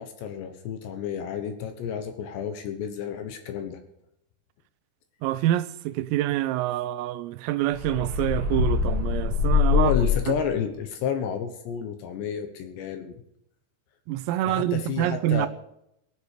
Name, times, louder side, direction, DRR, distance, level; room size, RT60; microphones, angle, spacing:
voice 1, 0.0-3.8 9.7-13.2 14.5-15.5, left 7 dB, 70° left, 3.0 m, -31 dB
voice 2, 5.2-9.9 14.1-15.5, right 14 dB, 90° right, 3.4 m, -26 dB
sound 1, 7.7-10.5, left 6 dB, 35° left, 8.8 m, -24 dB
18.5 x 8.2 x 6.6 m
omnidirectional pair, 5.9 m